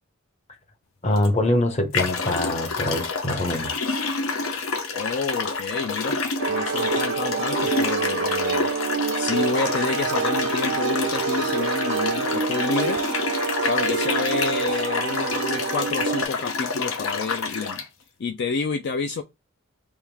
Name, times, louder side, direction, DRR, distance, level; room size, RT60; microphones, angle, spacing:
voice 1, 1.0-3.7, left 1 dB, 30° left, 0.8 m, -24 dB
sound 1, 1.2-1.3 1.9-17.8, left 4 dB, 75° left, 0.8 m, -28 dB
voice 2, 4.9-6.2 6.5-8.7 9.1-13.0 13.4-17.8 18.2-19.2, left 4 dB, 55° left, 0.4 m, -29 dB
sound 2, 6.4-16.2, right 6 dB, 60° right, 0.4 m, -27 dB
3.6 x 2.6 x 4.6 m
head